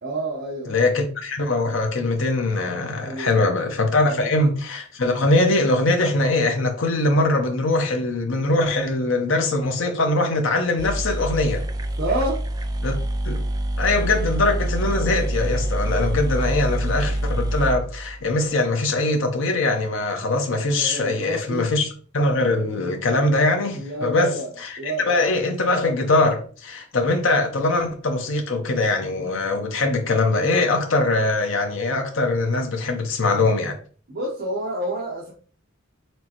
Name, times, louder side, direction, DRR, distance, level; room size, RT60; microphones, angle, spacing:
voice 1, 0.0-0.8 3.0-3.8 4.0-4.3 12.0-12.4 20.8-21.7 23.7-24.5 24.8-25.1 34.1-35.3, right 1 dB, 50° right, 0.9 m, -29 dB
voice 2, 0.7-11.6 12.8-12.9 13.2-13.4 13.8-21.9 22.1-33.8, left 2 dB, 65° left, 0.8 m, -22 dB
sound 1, 10.5-10.6 10.8-18.6, right 1 dB, 20° right, 0.3 m, -26 dB
4.5 x 3.2 x 2.9 m
head